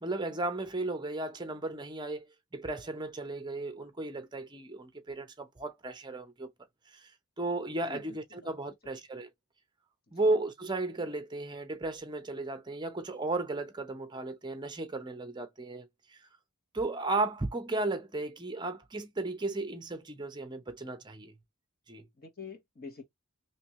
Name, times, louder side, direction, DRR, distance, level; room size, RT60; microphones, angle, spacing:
voice 1, 0.0-6.5 6.9-7.1 7.4-9.3 10.1-16.2 16.7-21.3 21.9-22.1, right 2 dB, 20° right, 0.7 m, -35 dB
voice 2, 7.9-8.5 10.1-10.3 22.1-23.0, left 5 dB, 45° left, 1.1 m, -47 dB
3.2 x 3.0 x 3.0 m
head